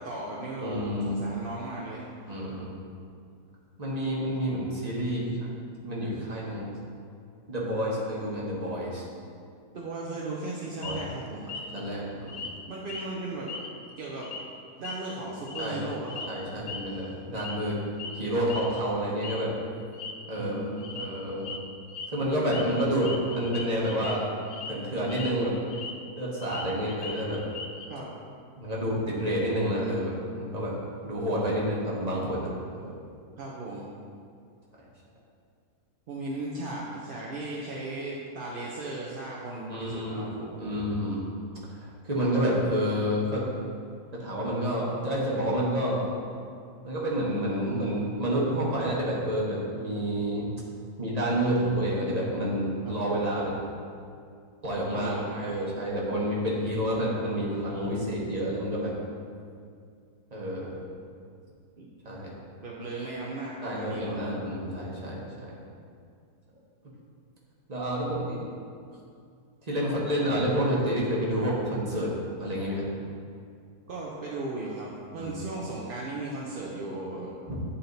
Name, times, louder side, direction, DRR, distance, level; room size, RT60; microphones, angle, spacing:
voice 1, 0.0-2.1 9.7-11.5 12.7-13.5 14.0-14.3 14.8-16.5 16.9-17.1 20.4-21.1 27.9-28.1 33.4-33.9 36.1-40.8 52.8-53.0 54.9-55.7 57.7-57.9 61.8-61.9 62.6-64.3 73.9-77.3, right 2 dB, 50° right, -5 dB, 0.7 m, -36 dB
voice 2, 0.6-1.2 2.3-2.7 3.8-5.5 5.8-6.7 7.5-9.0 10.8-11.0 11.7-12.5 15.6-15.8 16.3-17.8 18.1-19.5 20.3-20.6 20.9-21.5 22.1-24.2 24.7-25.5 26.2-27.4 28.6-30.7 31.0-32.5 32.8-32.9 39.7-40.2 40.6-41.2 41.8-43.4 44.1-46.1 46.8-50.5 51.0-53.5 54.6-55.1 55.4-58.9 60.3-60.7 62.0-62.3 63.6-65.5 67.7-68.4 69.7-72.1 72.4-72.8 75.2-75.3 77.5-77.6, equal, 25° right, -5 dB, 1.3 m, -29 dB
sound 1, 10.8-11.1 11.5-11.8 12.3-12.5 12.8-13.1 13.5-13.9 14.2-14.4 14.8-15.7 16.1-16.3 16.7-16.9 17.3-17.7 18.0-18.2 18.5-18.8 19.2-19.4 19.8-20.1 20.8-21.1 21.4-21.6 21.9-22.1 22.5-24.1 24.4-24.7 25.0-25.9 26.2-27.9, left 4 dB, 60° left, 0.6 m, -39 dB
9.3 x 4.2 x 4.0 m, 2.3 s
omnidirectional pair, 1.7 m